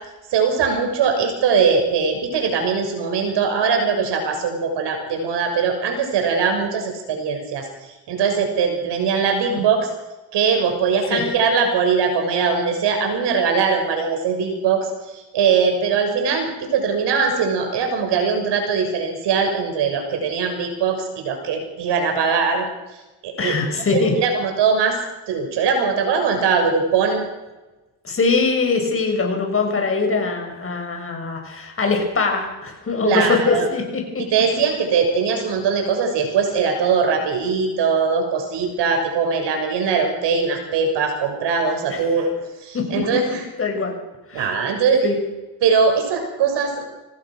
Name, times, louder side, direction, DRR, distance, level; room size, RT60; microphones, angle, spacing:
voice 1, 0.3-7.7 8.1-9.9 10.3-14.9 15.1-22.7 23.2-25.0 25.3-27.2 33.0-33.7 34.3-42.3 42.6-43.4 44.3-45.1 45.6-46.9, right 5 dB, 65° right, 4 dB, 6.7 m, -21 dB
voice 2, 23.4-24.1 28.0-34.2 41.9-42.0 42.7-42.8 43.6-43.9 44.3-44.5 45.0-45.2, left 4 dB, 30° left, 3 dB, 7.0 m, -22 dB
25.5 x 19.0 x 6.5 m, 1.1 s
cardioid pair, 110°, 45 cm